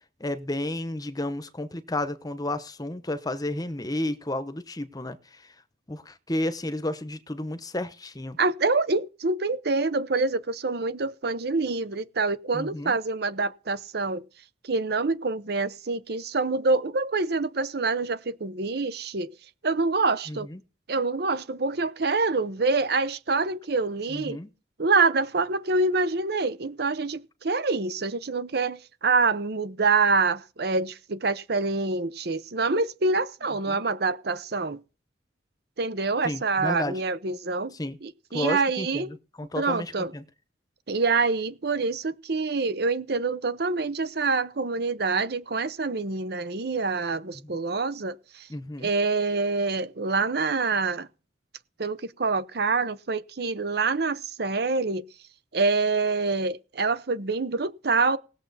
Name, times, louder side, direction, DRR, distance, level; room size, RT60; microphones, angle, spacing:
voice 1, 0.2-5.2 5.9-8.4 12.5-13.0 20.3-20.6 24.1-24.5 33.7-33.8 36.2-37.0 37.7-38.0 38.3-40.2 47.4-47.6 48.5-48.9, left 1 dB, 20° left, 0.9 m, -32 dB
voice 2, 8.4-14.2 14.6-19.3 19.6-20.5 20.9-24.4 24.8-34.8 35.8-37.7 38.0-39.1 39.6-40.1 40.9-48.5 48.8-51.1 51.8-55.0 55.5-58.2, right 3 dB, 65° right, 0.8 m, -26 dB
19.0 x 7.2 x 4.1 m
head